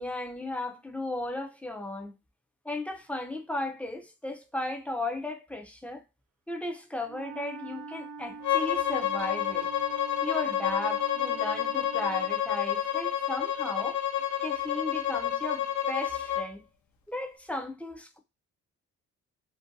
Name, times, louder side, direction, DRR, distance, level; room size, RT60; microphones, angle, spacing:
voice 1, 0.0-2.1 2.6-6.0 6.5-9.7 10.2-14.0 14.4-16.6 17.1-18.2, left 1 dB, 5° left, 0.4 m, -35 dB
Wind instrument woodwind instrument, 7.0-12.4, right 5 dB, 55° right, 0.5 m, -44 dB
Bowed string instrument, 8.4-16.5, left 10 dB, 70° left, 0.6 m, -29 dB
2.5 x 2.2 x 2.6 m
cardioid pair, 90°, 30 cm